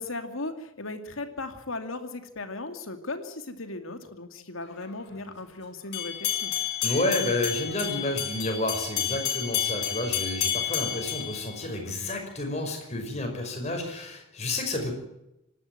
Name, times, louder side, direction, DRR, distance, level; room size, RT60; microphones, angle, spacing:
voice 1, 0.0-6.5, left 2 dB, 75° left, 7 dB, 2.5 m, -37 dB
sound 1, 5.9-12.2, left 9 dB, 55° left, 5.0 m, -30 dB
voice 2, 6.8-14.9, left 2 dB, 35° left, 3 dB, 5.6 m, -30 dB
26.5 x 12.0 x 9.0 m, 0.86 s
head